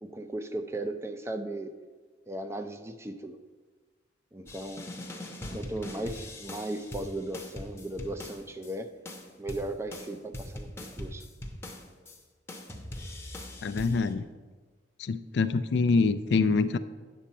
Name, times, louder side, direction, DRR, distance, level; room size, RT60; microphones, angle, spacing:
voice 1, 0.0-1.8 2.3-3.4 4.3-4.9 5.5-8.9 9.4-11.2, right 1 dB, 15° right, 8 dB, 0.4 m, -37 dB
sound 1, 4.5-8.7 9.1-12.2 12.5-14.1, left 1 dB, 15° left, 0.7 m, -41 dB
voice 2, 13.6-14.3 15.0-16.8, left 4 dB, 65° left, 13 dB, 0.3 m, -25 dB
8.7 x 6.3 x 4.2 m, 1.4 s
head